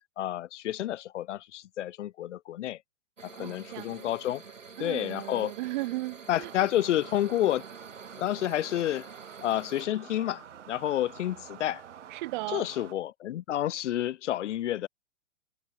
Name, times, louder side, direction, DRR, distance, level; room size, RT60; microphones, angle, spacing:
voice 1, 0.2-2.8 3.2-4.4 4.8-5.5 6.3-7.6 8.2-9.1 9.4-11.8 12.5-14.9, left 13 dB, 70° left, 0.5 m, -30 dB
sound 1, 3.2-9.9, right 5 dB, 90° right, 3.3 m, -48 dB
voice 2, 3.4-4.2 4.8-6.5 12.1-12.7, right 20 dB, 40° right, 0.8 m, -36 dB
sound 2, 6.3-12.9, right 9 dB, 70° right, 1.8 m, -48 dB
hypercardioid pair, 120°, 37 cm